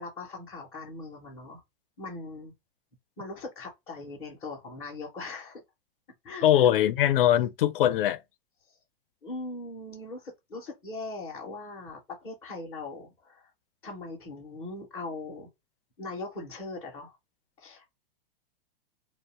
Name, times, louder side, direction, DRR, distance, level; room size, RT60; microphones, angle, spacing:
voice 1, 0.0-1.6 2.0-2.5 3.2-5.6 6.2-6.5 9.2-13.5 13.8-15.5 16.0-17.2 17.6-17.9, left 3 dB, 10° left, 0.4 m, -40 dB
voice 2, 6.4-8.2, left 11 dB, 65° left, 0.4 m, -22 dB
2.6 x 2.0 x 2.8 m
supercardioid pair, 160°, 29 cm